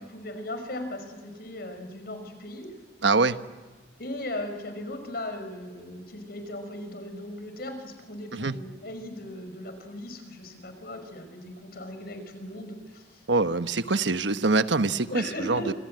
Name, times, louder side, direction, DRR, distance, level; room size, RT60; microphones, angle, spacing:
voice 1, 0.1-2.7 4.0-13.2 15.1-15.7, left 1 dB, 55° left, 7 dB, 5.7 m, -37 dB
voice 2, 3.0-3.4 8.3-8.6 13.3-15.7, right 3 dB, 80° right, 10 dB, 1.2 m, -24 dB
28.0 x 27.0 x 7.8 m, 1.4 s
head